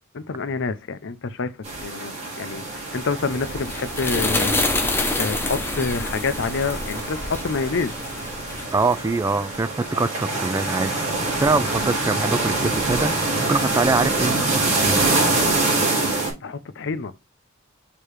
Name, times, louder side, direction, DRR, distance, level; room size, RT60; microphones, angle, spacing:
voice 1, 0.1-1.5 1.8-4.5 5.2-7.9 16.4-17.1, left 4 dB, 60° left, 0.6 m, -27 dB
sound 1, 1.6-16.3, right 2 dB, 35° right, 3.8 m, -25 dB
sound 2, 3.0-9.6, left 2 dB, 10° left, 0.9 m, -28 dB
voice 2, 8.7-11.0 11.4-15.1, right 3 dB, 15° right, 0.3 m, -24 dB
6.7 x 3.0 x 4.8 m
head